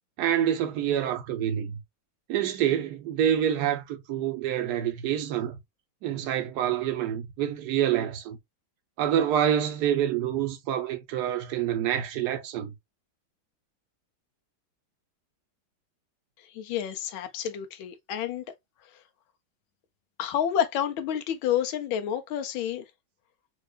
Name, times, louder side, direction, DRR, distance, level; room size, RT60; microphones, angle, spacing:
voice 1, 0.2-1.7 2.3-5.6 6.0-8.4 9.0-12.7, right 10 dB, 65° right, 1.1 m, -27 dB
voice 2, 16.5-18.4 20.2-22.8, left 10 dB, 80° left, 1.5 m, -29 dB
4.6 x 2.4 x 2.3 m
omnidirectional pair, 2.2 m